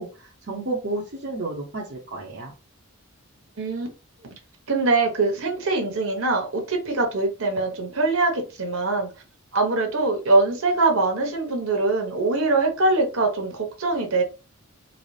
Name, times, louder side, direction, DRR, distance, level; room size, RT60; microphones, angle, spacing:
voice 1, 0.0-2.5, right 2 dB, 50° right, -3 dB, 0.7 m, -31 dB
voice 2, 3.6-3.9 4.7-9.1 9.5-14.2, right 3 dB, 70° right, 2 dB, 1.1 m, -23 dB
3.9 x 2.0 x 3.2 m, 0.32 s
head